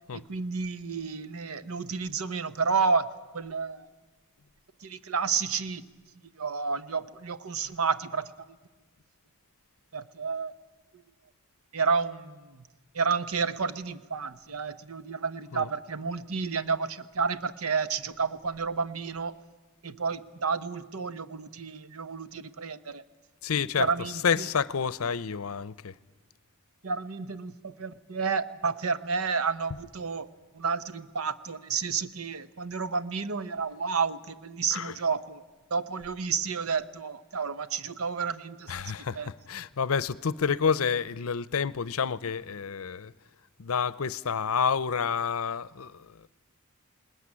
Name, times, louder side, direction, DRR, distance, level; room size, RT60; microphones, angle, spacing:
voice 1, 0.1-3.9 4.8-5.8 6.4-8.5 9.9-10.5 11.7-12.7 12.9-19.4 19.8-23.0 23.8-24.5 26.8-30.3 30.5-35.4 35.7-38.7 39.0-39.3, right 5 dB, 75° right, 0.9 m, -31 dB
voice 2, 23.4-25.9 29.7-29.8 34.7-35.1 38.7-43.1 43.6-46.3, left 6 dB, 75° left, 0.6 m, -29 dB
20.0 x 20.0 x 9.8 m
head